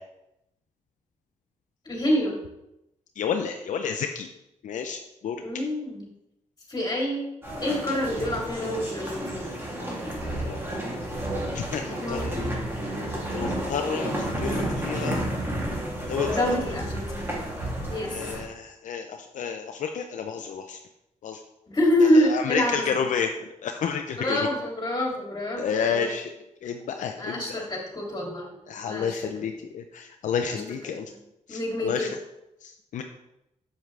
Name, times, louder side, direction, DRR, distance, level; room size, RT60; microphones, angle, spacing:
voice 1, 1.8-2.4 5.4-6.1 6.7-7.3 7.6-9.5 12.0-12.2 12.9-13.0 16.3-17.3 17.9-18.2 21.7-22.9 24.2-26.1 27.2-28.5 28.8-29.3 30.5-30.6 31.5-32.1, left 1 dB, 30° left, -2 dB, 3.0 m, -26 dB
voice 2, 3.2-4.3 4.6-5.4 10.4-10.6 11.5-12.4 13.3-15.2 16.1-16.4 18.1-20.8 21.2-21.4 22.1-23.3 23.6-24.5 25.6-26.3 26.6-27.7 28.7-31.1 31.5-32.2 32.6-33.0, left 7 dB, 75° left, 5 dB, 0.6 m, -30 dB
sound 1, 7.4-18.4, right 1 dB, 20° right, 2.8 m, -31 dB
7.7 x 7.2 x 3.4 m, 0.88 s
cardioid pair, 80°, 13 cm